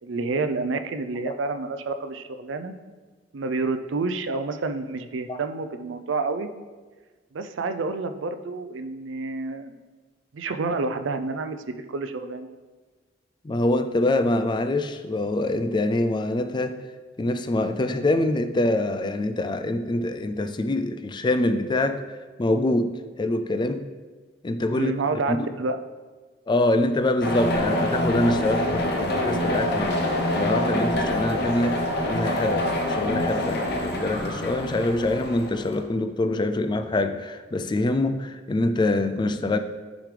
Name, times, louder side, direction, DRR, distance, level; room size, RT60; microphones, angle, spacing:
voice 1, 0.0-2.7 3.3-6.5 7.3-9.7 10.3-12.5 24.7-25.8, right 3 dB, 75° right, 9 dB, 0.5 m, -29 dB
voice 2, 13.4-16.8 17.2-22.0 22.4-23.9 24.4-24.9 25.3-25.5 26.5-30.0 30.3-39.6, left 2 dB, 25° left, 9 dB, 0.3 m, -25 dB
sound 1, 27.2-35.8, left 1 dB, 55° left, 0.9 m, -26 dB
9.2 x 5.1 x 3.3 m, 1.3 s
head